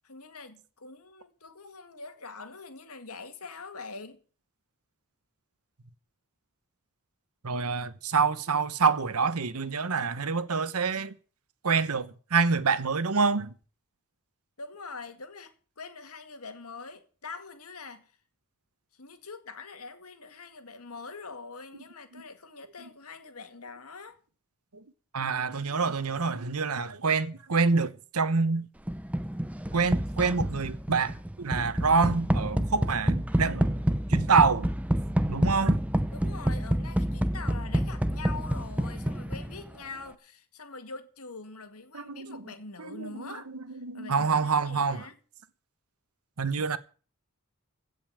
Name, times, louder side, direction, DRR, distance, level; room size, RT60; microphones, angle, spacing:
voice 1, 0.0-4.2 14.6-18.1 18.9-24.2 36.1-45.2, left 4 dB, 85° left, 2.1 m, -44 dB
voice 2, 7.4-11.2 11.6-13.5 22.1-22.2 22.8-22.9 24.7-24.8 25.1-28.7 29.7-33.8 34.1-34.7 35.3-35.8 41.9-42.4 42.8-45.1 46.4-46.8, right 5 dB, 85° right, 1.1 m, -27 dB
sound 1, 28.9-39.7, equal, 5° right, 0.6 m, -28 dB
16.5 x 5.5 x 8.7 m
head